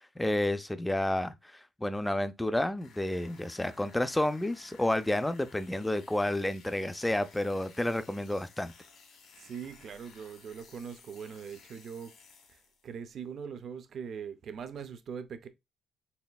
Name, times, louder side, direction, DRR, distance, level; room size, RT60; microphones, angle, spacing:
voice 1, 0.2-8.7, left 1 dB, 10° left, 0.4 m, -30 dB
sound 1, 2.7-12.9, left 5 dB, 75° left, 1.3 m, -57 dB
voice 2, 9.4-12.1 12.5-15.5, right 7 dB, 60° right, 0.5 m, -42 dB
4.2 x 3.2 x 2.2 m
cardioid pair, 90°, 0 cm